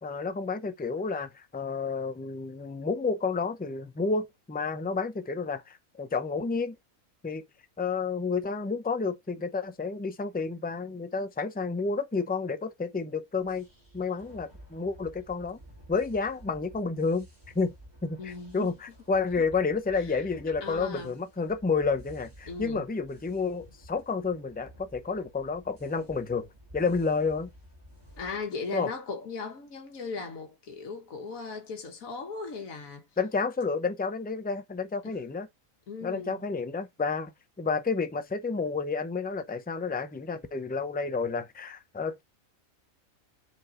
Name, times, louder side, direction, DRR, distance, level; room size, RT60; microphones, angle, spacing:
voice 1, 0.0-6.8 7.2-7.4 7.8-13.7 13.9-15.6 15.9-17.3 17.5-17.7 18.0-26.5 26.7-27.5 28.7-28.9 33.2-35.5 36.0-37.3 37.6-42.2, left 4 dB, 10° left, 0.4 m, -30 dB
sound 1, 13.4-28.5, equal, 15° right, 3.6 m, -52 dB
voice 2, 18.2-18.7 20.0-20.2 20.6-21.2 22.5-22.8 28.2-33.1 35.0-35.2 35.9-36.4, left 4 dB, 70° left, 1.8 m, -38 dB
6.7 x 4.7 x 3.9 m
omnidirectional pair, 1.5 m